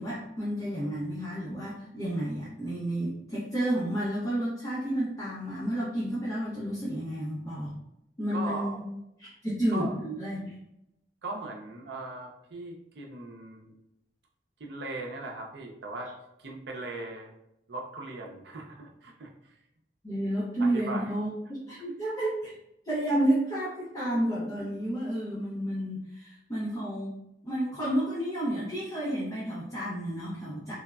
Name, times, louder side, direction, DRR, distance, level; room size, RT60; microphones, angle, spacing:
voice 1, 0.0-7.7 8.2-8.9 9.2-10.6 20.0-22.6 22.8-30.7, right 1 dB, 20° left, -7 dB, 0.5 m, -31 dB
voice 2, 8.3-8.8 9.7-10.0 11.2-13.7 14.6-16.1 16.4-17.3 17.7-19.3 20.6-21.1, right 2 dB, 75° right, 1 dB, 0.5 m, -38 dB
3.3 x 2.0 x 2.3 m, 0.83 s
head